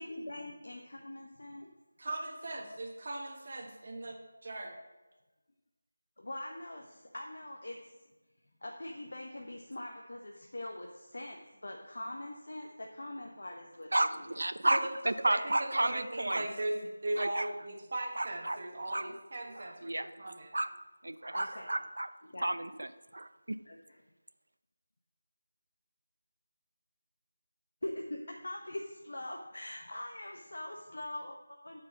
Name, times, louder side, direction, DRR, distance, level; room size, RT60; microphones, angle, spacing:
voice 1, 0.0-1.7 6.2-7.9 8.6-14.2 21.3-21.8 22.2-22.8 23.6-24.0 27.8-31.8, left 1 dB, 60° left, 1 dB, 1.1 m, -43 dB
voice 2, 2.0-4.7 14.7-14.9 15.3-16.8 17.0-20.5, right 2 dB, 35° right, 1 dB, 1.1 m, -38 dB
voice 3, 13.9-16.5 17.1-17.5 18.2-18.6 18.9-19.1 19.6-22.1 22.4-22.9 23.1-23.6, right 1 dB, 80° right, 11 dB, 0.6 m, -32 dB
9.2 x 4.9 x 7.2 m, 1.1 s
figure-of-eight pair, 180°, 0 cm